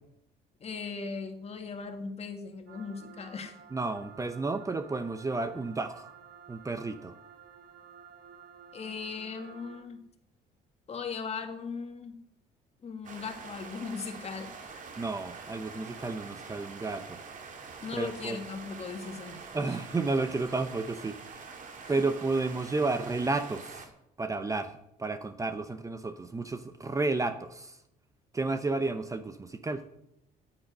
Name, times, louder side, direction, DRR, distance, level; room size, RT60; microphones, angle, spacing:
voice 1, 0.6-3.6 8.7-10.0 10.9-12.2 12.8-14.8 17.8-19.4 19.7-19.8 21.8-22.0, left 5 dB, 40° left, 6 dB, 2.1 m, -38 dB
sound 1, 2.7-9.8, right 7 dB, 75° right, 1.8 m, -52 dB
voice 2, 3.7-6.1 6.5-7.1 15.0-17.2 17.9-18.4 19.5-21.2 21.9-23.8 24.2-27.8 28.3-29.8, right 3 dB, 20° right, 10 dB, 0.9 m, -32 dB
sound 2, 13.0-23.9, right 5 dB, 50° right, 2.2 m, -45 dB
9.6 x 9.0 x 9.3 m, 0.82 s
cardioid pair, 110°, 17 cm